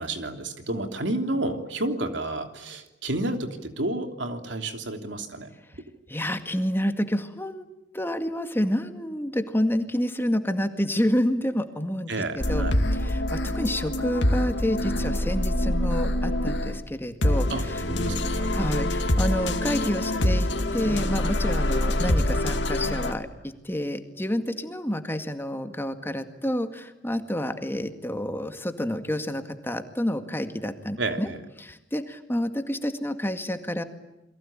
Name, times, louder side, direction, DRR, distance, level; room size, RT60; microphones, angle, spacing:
voice 1, 0.0-5.5 12.1-12.9 17.5-18.5 31.0-31.4, right 2 dB, 80° right, 6 dB, 3.2 m, -31 dB
voice 2, 6.1-7.6 7.9-12.1 12.5-12.7 12.9-17.8 18.5-23.3 23.6-31.3 31.6-33.8, equal, 15° left, 7 dB, 2.1 m, -29 dB
sound 1, 12.4-16.8 17.2-23.1, left 1 dB, 70° left, 2.3 m, -25 dB
29.0 x 23.0 x 8.9 m, 0.94 s
head